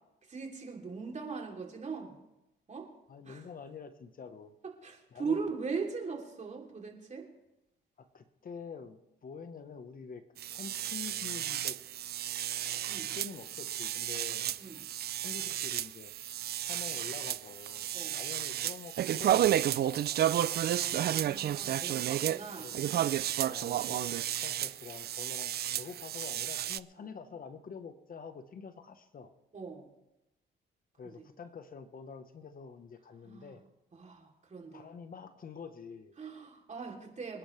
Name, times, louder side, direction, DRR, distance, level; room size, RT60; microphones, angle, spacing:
voice 1, 0.3-2.2 2.7-2.9 3.2-3.4 4.8-7.3 12.9-13.1 14.6-14.8 17.9-18.2 20.7-23.1 29.5-29.9 31.0-31.2 33.2-33.5 33.9-34.9 36.2-37.4, right 5 dB, 35° right, 0 dB, 3.1 m, -40 dB
voice 2, 3.1-4.5 5.1-5.4 8.0-10.2 10.5-11.8 12.0-12.4 12.9-14.9 15.2-16.1 16.6-20.3 21.6-21.8 22.6-22.8 23.5-29.3 31.0-33.6 34.7-36.2, left 5 dB, 45° left, 9 dB, 1.1 m, -47 dB
sound 1, 10.4-26.8, right 11 dB, 55° right, 0.4 m, -32 dB
26.0 x 10.5 x 3.3 m, 0.92 s
cardioid pair, 90°, 20 cm